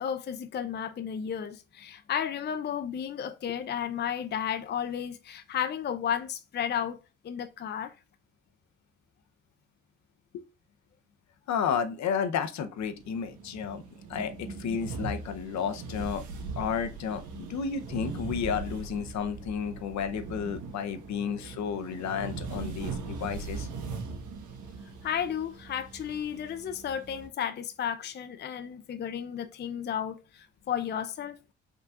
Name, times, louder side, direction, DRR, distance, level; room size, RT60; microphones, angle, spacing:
voice 1, 0.0-7.0 7.2-7.9 25.0-31.4, left 8 dB, 35° left, 0.5 m, -33 dB
voice 2, 11.5-13.8 14.1-16.2 16.6-23.7, left 7 dB, 65° left, 0.7 m, -32 dB
sound 1, 12.8-27.3, right 4 dB, 80° right, 1.2 m, -40 dB
5.4 x 3.8 x 2.4 m
cardioid pair, 90°, 30 cm